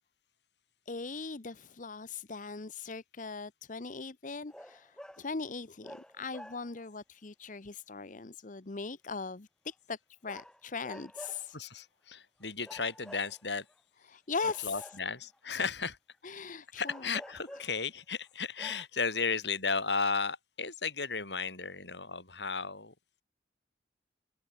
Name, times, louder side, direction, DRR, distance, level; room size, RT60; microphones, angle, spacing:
voice 1, 0.9-11.6 14.1-14.9 15.6-15.7 16.2-17.1, left 4 dB, 45° left, 0.9 m, -40 dB
sound 1, 4.5-5.3 5.8-6.9 10.3-11.5 12.6-13.7 14.4-15.4 16.8-17.9 18.3-18.4 18.6-18.8, equal, 5° left, 3.3 m, -49 dB
voice 2, 11.5-13.6 14.6-16.0 16.8-22.9, left 4 dB, 75° left, 6.6 m, -34 dB
head